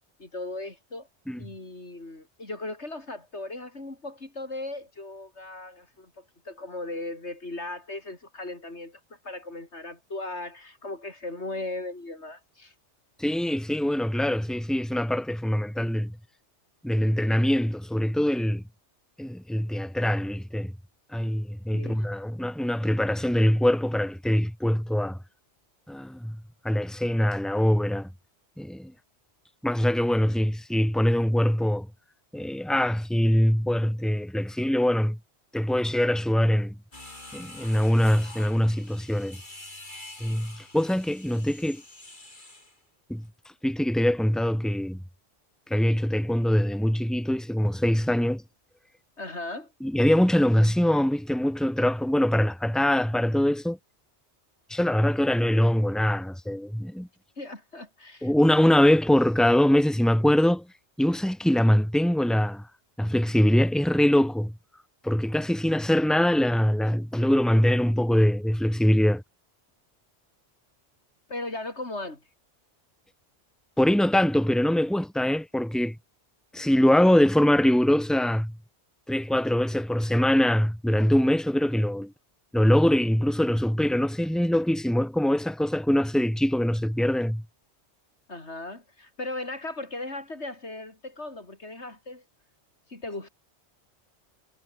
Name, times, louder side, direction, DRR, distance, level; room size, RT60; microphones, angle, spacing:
voice 1, 0.2-1.1 1.4-12.7 21.7-22.0 49.2-49.7 57.4-58.3 71.3-72.2 88.3-92.2 92.9-93.3, left 2 dB, 70° left, 4.8 m, -37 dB
voice 2, 13.2-16.2 16.8-18.6 19.2-20.7 21.1-25.2 25.9-26.4 26.6-28.1 28.6-28.9 29.6-31.9 32.3-35.2 35.5-36.7 37.3-39.4 40.2-41.8 43.1-43.3 43.6-45.0 45.7-48.4 49.8-53.8 54.7-57.1 58.2-60.7 61.0-62.7 63.0-64.5 65.0-69.2 73.8-76.0 76.5-78.6 79.1-82.1 82.5-87.4, equal, ahead, 2.9 m, -23 dB
sound 1, 36.9-42.8, left 1 dB, 45° left, 4.8 m, -46 dB
omnidirectional pair, 1.2 m